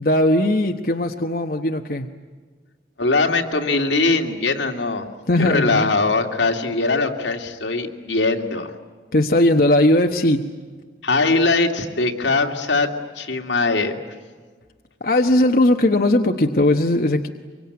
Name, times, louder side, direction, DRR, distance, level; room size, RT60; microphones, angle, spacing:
voice 1, 0.0-2.1 5.3-5.9 9.1-10.5 15.0-17.3, left 1 dB, 50° left, 4 dB, 1.2 m, -18 dB
voice 2, 3.0-5.1 5.4-8.7 11.0-13.9, left 3 dB, 85° left, 3 dB, 2.5 m, -21 dB
25.0 x 24.0 x 9.6 m, 1.5 s
head